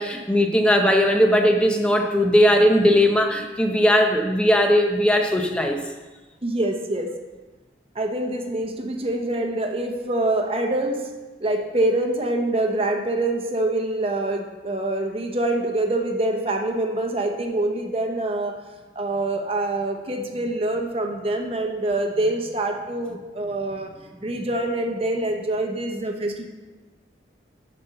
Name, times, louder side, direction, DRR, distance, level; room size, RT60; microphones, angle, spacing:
voice 1, 0.0-5.8, equal, 5° left, 3 dB, 0.8 m, -18 dB
voice 2, 6.4-7.1 7.9-11.1 11.4-18.6 18.9-23.9 24.2-26.4, right 2 dB, 30° right, 3 dB, 1.0 m, -25 dB
10.5 x 4.4 x 6.6 m, 1.2 s
head